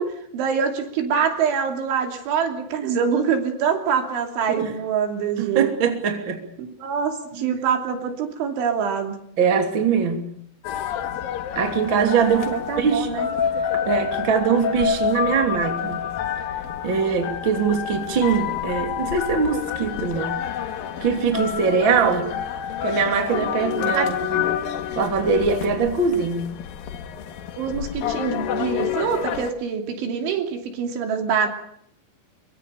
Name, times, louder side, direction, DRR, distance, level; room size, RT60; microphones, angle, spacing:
voice 1, 0.0-5.7 6.6-9.2 12.3-13.3 23.9-24.1 27.6-31.5, right 6 dB, 75° right, 5 dB, 5.3 m, -25 dB
voice 2, 5.4-6.4 7.4-7.6 9.4-10.3 11.5-13.1 13.6-16.1 16.8-20.4 21.0-22.3 22.8-24.5 25.0-26.6, right 6 dB, 30° right, 4 dB, 2.9 m, -22 dB
sound 1, 10.6-29.5, left 9 dB, 60° left, 2.8 m, -28 dB
25.0 x 23.5 x 6.8 m, 0.68 s
omnidirectional pair, 5.5 m